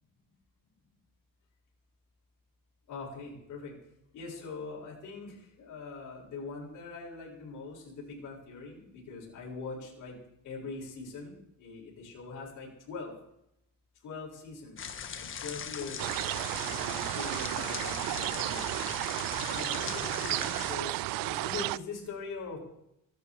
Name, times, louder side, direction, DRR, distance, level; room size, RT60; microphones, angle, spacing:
voice 1, 2.9-3.7 4.1-10.2 10.4-13.1 14.0-18.7 19.5-22.6, left 4 dB, 55° left, -4 dB, 7.7 m, -42 dB
sound 1, 14.8-20.8, left 7 dB, 35° left, 1.6 m, -40 dB
sound 2, 16.0-21.8, right 18 dB, 75° right, 0.5 m, -33 dB
25.0 x 12.0 x 4.9 m, 0.79 s
cardioid pair, 175°, 34 cm